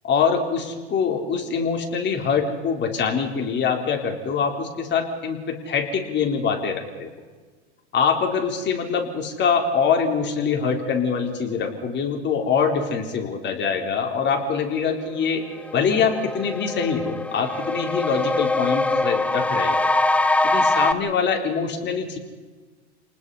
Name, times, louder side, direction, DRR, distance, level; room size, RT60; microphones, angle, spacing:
voice 1, 0.0-0.6 0.9-7.1 7.9-15.4 15.7-19.9 20.4-22.2, left 6 dB, 30° left, 3 dB, 3.9 m, -24 dB
sound 1, 15.1-15.2 15.6-20.9, left 2 dB, 5° left, 0.8 m, -23 dB
28.5 x 20.0 x 5.6 m, 1.4 s
supercardioid pair, 120°, 34 cm